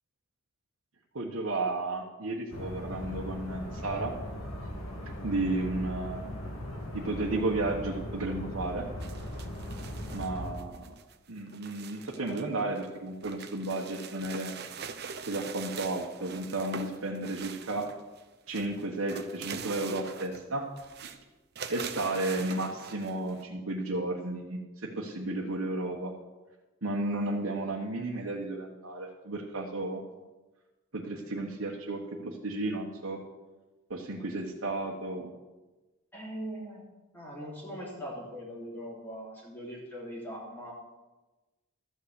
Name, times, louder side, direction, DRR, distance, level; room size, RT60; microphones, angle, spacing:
voice 1, 1.1-4.1 5.2-6.2 6.9-8.9 10.1-10.9 11.3-14.5 15.2-17.9 18.5-20.7 21.0-21.1 21.7-26.1 26.8-30.0 30.9-33.2 33.9-35.3, right 2 dB, 70° right, -1 dB, 1.3 m, -33 dB
sound 1, 2.5-10.5, equal, 80° left, 2.3 m, -39 dB
sound 2, 9.0-12.4 12.7-18.2 18.5-20.5 20.8-21.2 21.6-23.4, right 6 dB, 50° right, 0.7 m, -43 dB
voice 2, 36.1-36.8 37.1-40.7, equal, 10° left, -5 dB, 3.1 m, -41 dB
13.0 x 5.6 x 8.2 m, 1.2 s
head